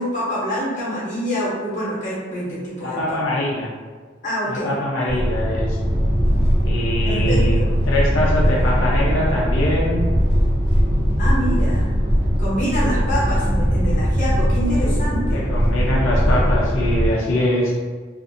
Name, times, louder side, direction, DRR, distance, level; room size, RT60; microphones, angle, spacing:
voice 1, 0.0-3.2 4.2-4.7 7.0-7.7 11.2-11.9 12.4-15.4, equal, 40° left, -7 dB, 0.9 m, -25 dB
voice 2, 2.8-3.7 4.5-5.8 6.6-7.6 7.8-10.0 15.3-17.7, left 1 dB, 90° left, -5 dB, 0.5 m, -23 dB
sound 1, 5.1-17.1, equal, 30° right, 0.6 m, -19 dB
2.5 x 2.5 x 2.6 m, 1.5 s
head